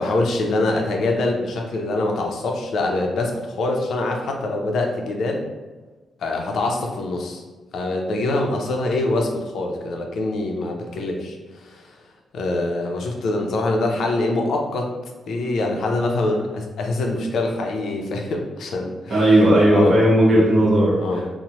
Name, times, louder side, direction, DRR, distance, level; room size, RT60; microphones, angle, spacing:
voice 1, 0.0-5.5 6.2-7.4 7.7-11.9 12.3-14.9 15.3-19.3 19.7-20.0 20.3-20.5 21.0-21.2, left 2 dB, 65° left, 2 dB, 0.4 m, -24 dB
voice 2, 19.1-21.3, right 1 dB, 40° right, -6 dB, 1.0 m, -16 dB
2.9 x 2.0 x 2.9 m, 1.2 s
cardioid pair, 140°, 0 cm